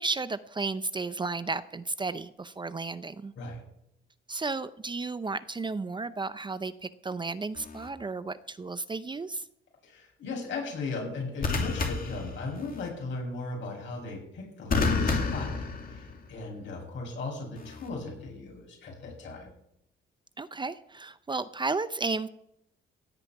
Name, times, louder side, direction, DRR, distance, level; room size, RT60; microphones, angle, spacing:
voice 1, 0.0-3.3 4.3-9.5 20.4-22.3, right 3 dB, 25° right, 14 dB, 0.6 m, -33 dB
sound 1, 7.5-7.9 11.4-12.9 14.7-16.4 17.6-17.9, left 4 dB, 45° left, 2.6 m, -30 dB
voice 2, 9.8-15.5 15.9-19.5, left 3 dB, 70° left, 0 dB, 7.3 m, -37 dB
16.5 x 5.6 x 9.3 m, 0.79 s
cardioid pair, 90°, 20 cm